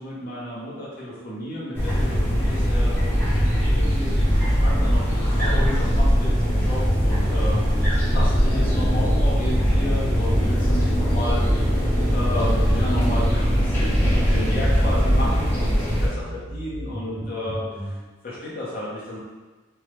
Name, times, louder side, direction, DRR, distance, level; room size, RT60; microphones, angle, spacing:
voice 1, 0.0-17.9 18.2-19.2, left 1 dB, 45° left, -7 dB, 0.8 m, -33 dB
sound 1, 1.7-16.1, equal, 10° left, 0.7 m, -20 dB
sound 2, 6.7-18.0, equal, 15° right, 0.3 m, -36 dB
3.3 x 2.0 x 3.1 m, 1.2 s
head